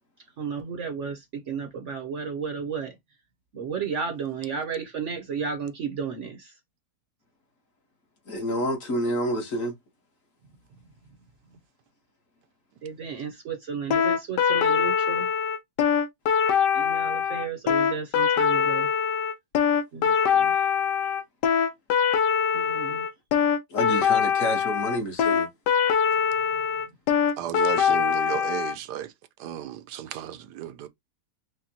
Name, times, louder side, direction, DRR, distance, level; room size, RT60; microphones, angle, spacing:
voice 1, 0.4-3.0 3.5-6.5 12.8-15.3 16.7-18.9 19.9-20.6 22.5-23.1, right 6 dB, 55° right, 0.9 m, -33 dB
voice 2, 8.3-9.7 23.7-25.5, equal, 50° left, 1.6 m, -28 dB
sound 1, 13.9-28.8, left 7 dB, 85° left, 1.3 m, -23 dB
voice 3, 27.4-29.1 29.4-30.9, right 12 dB, 80° right, 1.2 m, -33 dB
5.0 x 2.2 x 2.7 m
omnidirectional pair, 1.8 m